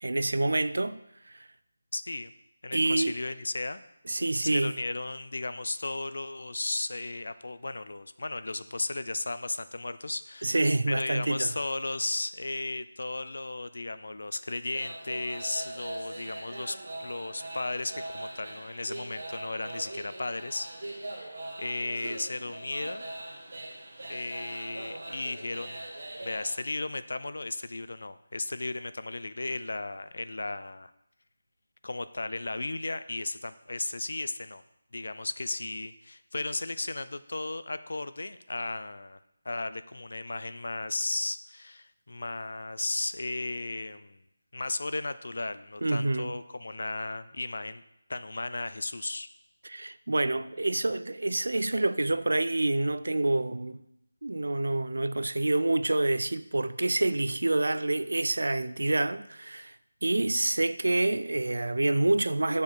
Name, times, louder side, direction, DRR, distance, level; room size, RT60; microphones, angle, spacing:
voice 1, 0.0-1.0 1.3-1.5 2.7-3.1 4.1-4.7 10.4-11.5 45.8-46.3 49.6-53.8 54.2-59.7 60.0-62.6, right 2 dB, 90° right, 0.4 m, -27 dB
voice 2, 1.9-2.3 2.6-3.8 4.4-10.6 10.9-23.1 24.1-25.9 26.2-30.9 31.8-34.6 34.9-39.2 39.4-44.2 44.5-47.8 48.1-49.3, left 2 dB, 55° left, 0.3 m, -35 dB
sound 1, 14.7-26.6, right 1 dB, 45° right, 1.1 m, -41 dB
7.2 x 4.7 x 4.6 m
figure-of-eight pair, 180°, 0 cm